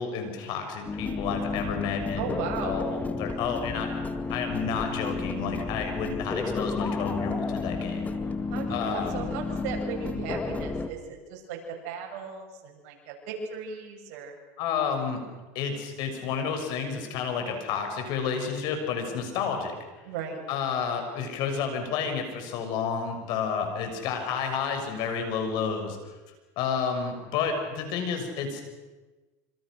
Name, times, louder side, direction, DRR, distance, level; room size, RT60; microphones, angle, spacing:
voice 1, 0.0-3.9 4.3-8.1 8.7-9.2 14.6-15.2 15.5-19.7 20.5-26.1 26.6-28.6, left 6 dB, 60° left, 5 dB, 6.5 m, -30 dB
sound 1, 0.9-10.9, left 3 dB, 20° left, 2.0 m, -32 dB
voice 2, 2.2-2.9 8.2-14.3 20.0-20.4, right 6 dB, 70° right, 1 dB, 7.6 m, -36 dB
26.5 x 26.5 x 6.5 m, 1.2 s
supercardioid pair, 120°, 8 cm